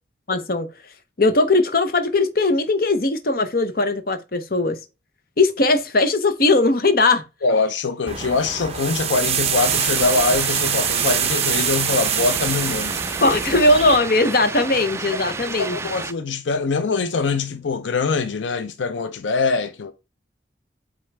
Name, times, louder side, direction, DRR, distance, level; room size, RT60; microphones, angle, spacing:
voice 1, 0.3-0.7 1.2-4.8 5.4-7.2 13.2-15.8, left 2 dB, 50° left, 0.9 m, -19 dB
voice 2, 7.4-13.0 15.5-19.9, left 4 dB, 85° left, 0.6 m, -23 dB
sound 1, 8.1-14.0, right 8 dB, 35° right, 0.7 m, -24 dB
sound 2, 9.6-16.1, right 4 dB, 15° right, 0.3 m, -31 dB
8.4 x 3.8 x 3.4 m
head